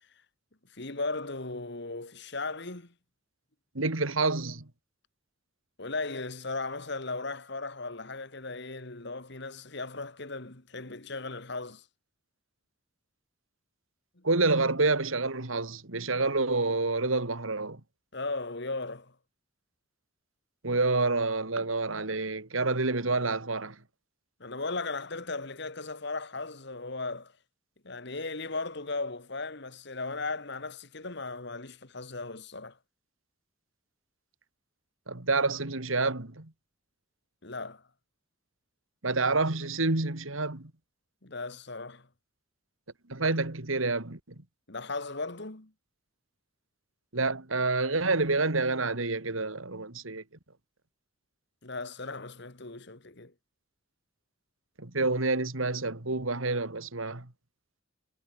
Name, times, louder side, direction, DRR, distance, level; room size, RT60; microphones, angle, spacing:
voice 1, 0.7-2.9 5.8-11.8 14.2-14.3 18.1-19.1 24.4-27.3 27.8-32.8 37.4-37.8 41.2-42.1 44.7-45.7 51.6-53.3, left 3 dB, 60° left, 2.3 m, -37 dB
voice 2, 3.7-4.7 14.2-17.8 20.6-23.8 35.1-36.5 39.0-40.7 43.1-44.2 47.1-50.2 54.8-57.3, right 3 dB, 90° right, 2.6 m, -28 dB
head